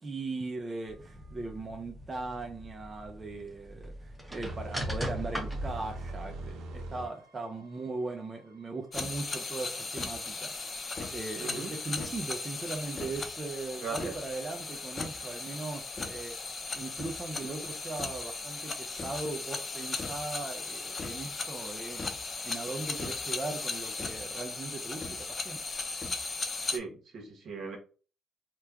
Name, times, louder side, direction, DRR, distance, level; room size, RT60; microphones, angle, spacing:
voice 1, 0.0-10.7 11.1-16.4 16.7-22.1 22.4-25.0 25.4-25.6, right 3 dB, 30° right, 3 dB, 0.5 m, -39 dB
sound 1, 0.9-6.3, equal, 10° right, 0.9 m, -40 dB
sound 2, 4.4-10.6 10.9-11.1, right 2 dB, 85° right, 0.6 m, -43 dB
sound 3, 8.9-26.8, left 3 dB, 35° left, 0.6 m, -37 dB
voice 2, 11.4-11.7 13.8-14.1 26.6-27.8, right 5 dB, 65° right, 1 dB, 1.2 m, -38 dB
3.0 x 2.2 x 3.6 m, 0.37 s
cardioid pair, 90°, 0 cm